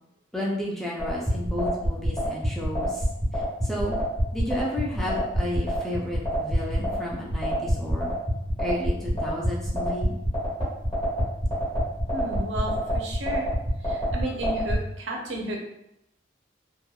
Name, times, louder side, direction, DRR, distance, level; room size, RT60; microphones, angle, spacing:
voice 1, 0.3-3.1 3.3-4.0 4.3-8.1 8.6-10.1, left 1 dB, ahead, -4 dB, 0.4 m, -32 dB
sound 1, 1.0-14.8, equal, 25° left, 1.1 m, -25 dB
voice 2, 12.1-13.5 13.8-15.6, right 1 dB, 90° right, 1 dB, 0.6 m, -33 dB
2.9 x 2.2 x 2.3 m, 0.84 s
head